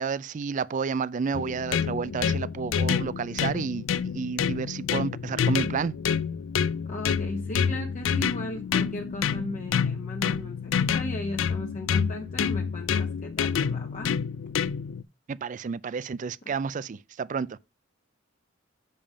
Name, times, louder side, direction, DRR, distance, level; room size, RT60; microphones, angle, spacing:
voice 1, 0.0-3.9 4.1-5.9 15.3-17.6, right 5 dB, 40° right, 0.4 m, -30 dB
sound 1, 1.3-15.0, left 7 dB, 70° left, 0.4 m, -28 dB
voice 2, 6.9-14.1, left 1 dB, 40° left, 1.1 m, -36 dB
6.9 x 5.4 x 5.0 m
head